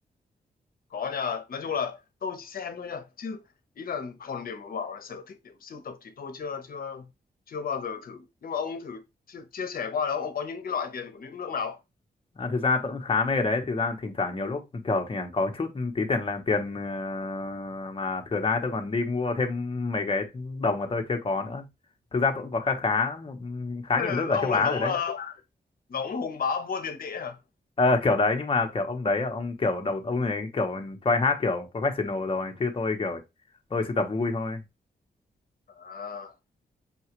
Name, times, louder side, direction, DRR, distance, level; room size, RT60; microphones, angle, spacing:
voice 1, 0.9-3.4 3.8-7.1 7.5-9.0 9.3-11.8 24.0-25.4 25.9-27.4 35.7-36.3, left 6 dB, 60° left, 0.8 m, -33 dB
voice 2, 12.4-21.6 22.1-24.9 27.8-33.2 33.7-34.6, left 3 dB, 35° left, 0.9 m, -27 dB
5.7 x 2.4 x 2.9 m
wide cardioid pair, 115°, 17 cm